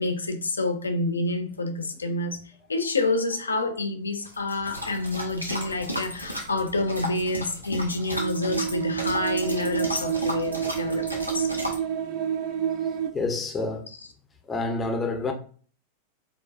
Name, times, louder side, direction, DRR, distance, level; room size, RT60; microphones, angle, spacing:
voice 1, 0.0-2.4 2.7-11.5 13.9-14.0, left 2 dB, 75° left, 0.3 m, -28 dB
sound 1, 4.3-11.8, equal, 90° right, 0.7 m, -35 dB
sound 2, 8.2-13.1, right 8 dB, 40° right, 0.3 m, -29 dB
voice 2, 13.1-13.8 14.5-15.3, left 3 dB, 20° left, 0.6 m, -28 dB
4.6 x 2.1 x 2.4 m
figure-of-eight pair, 90°, 0 cm